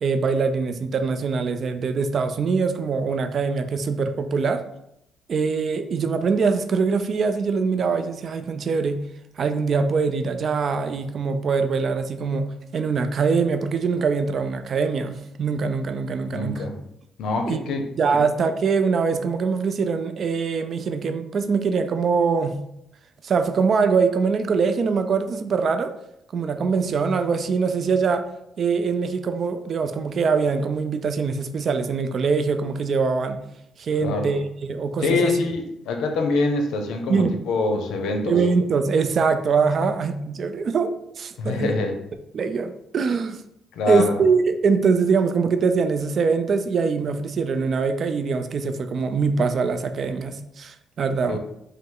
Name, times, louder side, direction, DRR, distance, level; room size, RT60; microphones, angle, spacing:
voice 1, 0.0-4.6 5.3-9.0 9.4-16.7 17.5-17.6 18.0-22.6 23.2-25.9 26.3-28.2 28.6-33.4 33.8-35.3 37.1-37.3 38.3-41.7 42.3-43.4 43.9-51.4, right 5 dB, 55° right, 8 dB, 0.4 m, -23 dB
voice 2, 16.3-16.8 17.2-17.9 34.0-34.3 35.0-38.4 39.8-39.9 41.4-42.0 43.8-44.1 51.3-51.4, left 3 dB, 85° left, 4 dB, 0.6 m, -24 dB
5.3 x 2.0 x 3.8 m, 0.80 s
cardioid pair, 90°, 0 cm